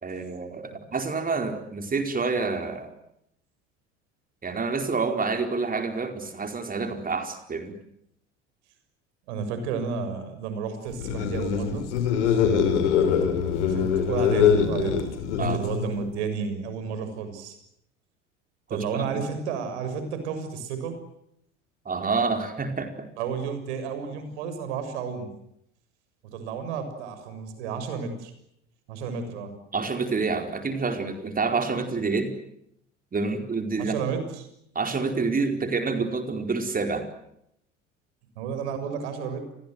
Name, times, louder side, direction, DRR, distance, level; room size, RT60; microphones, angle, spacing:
voice 1, 0.0-2.9 4.4-7.7 15.4-15.6 18.7-19.3 21.8-23.1 29.7-32.3 33.1-33.9 34.7-37.1, right 4 dB, 25° right, 6 dB, 4.6 m, -28 dB
voice 2, 9.3-12.8 13.7-15.0 15.4-17.6 18.7-21.0 23.2-25.3 26.2-28.3 28.9-29.5 33.8-34.5 38.4-39.5, right 6 dB, 65° right, 9 dB, 6.9 m, -32 dB
sound 1, 10.9-16.0, left 7 dB, 70° left, 5.1 m, -23 dB
29.5 x 23.0 x 8.0 m, 0.77 s
figure-of-eight pair, 70°, 36 cm